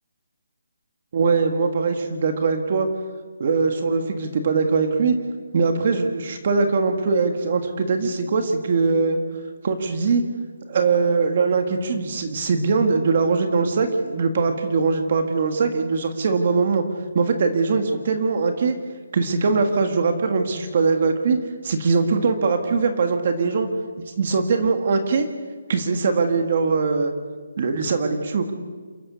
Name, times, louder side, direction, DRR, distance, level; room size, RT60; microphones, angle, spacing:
voice 1, 1.1-2.9 3.4-5.2 5.5-9.2 9.6-10.2 10.7-16.8 17.2-18.8 19.1-23.7 24.0-25.3 25.7-27.1 27.6-28.5, right 4 dB, 30° right, 6 dB, 1.6 m, -21 dB
28.0 x 13.5 x 6.9 m, 1.5 s
hypercardioid pair, 180°, 0 cm